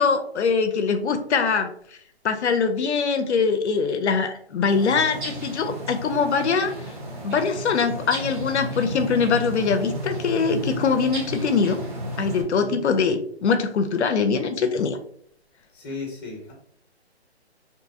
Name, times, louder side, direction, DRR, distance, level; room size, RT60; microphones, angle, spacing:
voice 1, 0.0-1.7 2.2-6.7 7.2-11.8 12.2-15.0, left 5 dB, 80° left, 7 dB, 0.5 m, -22 dB
sound 1, 4.7-12.4, equal, 45° right, 1.0 m, -33 dB
voice 2, 12.4-12.8 15.7-16.5, left 3 dB, 20° left, 0 dB, 0.8 m, -36 dB
2.6 x 2.4 x 2.6 m, 0.63 s
hypercardioid pair, 155°, 33 cm